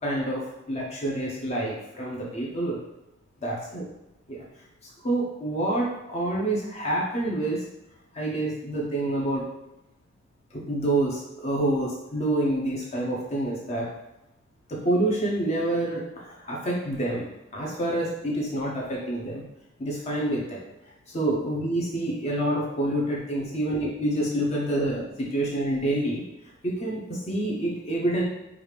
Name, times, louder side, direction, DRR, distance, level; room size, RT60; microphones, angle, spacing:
voice 1, 0.0-2.8 3.4-3.8 4.3-4.4 4.8-7.6 8.1-9.5 10.5-13.9 14.7-17.3 17.5-19.4 19.8-20.6 21.1-26.2 26.6-28.2, right 1 dB, 35° left, -3 dB, 0.7 m, -27 dB
4.9 x 2.4 x 3.3 m, 0.92 s
head